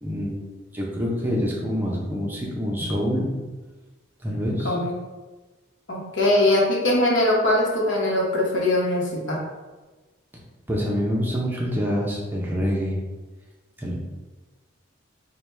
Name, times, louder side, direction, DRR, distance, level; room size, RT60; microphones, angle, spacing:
voice 1, 0.0-3.3 4.2-4.8 10.7-13.0 13.8-13.9, equal, 10° right, -4 dB, 0.6 m, -26 dB
voice 2, 5.9-9.4, left 1 dB, 70° left, -3 dB, 1.0 m, -21 dB
4.5 x 2.3 x 3.2 m, 1.2 s
head